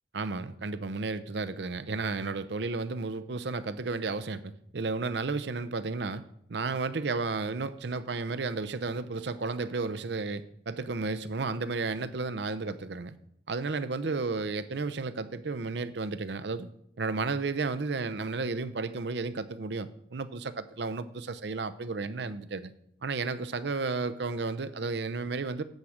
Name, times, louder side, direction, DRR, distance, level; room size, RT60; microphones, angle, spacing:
voice 1, 0.1-6.2 6.5-13.1 13.5-16.7 17.0-22.7 23.0-25.6, right 3 dB, 65° right, 13 dB, 0.6 m, -33 dB
10.5 x 5.0 x 7.1 m, 0.73 s
head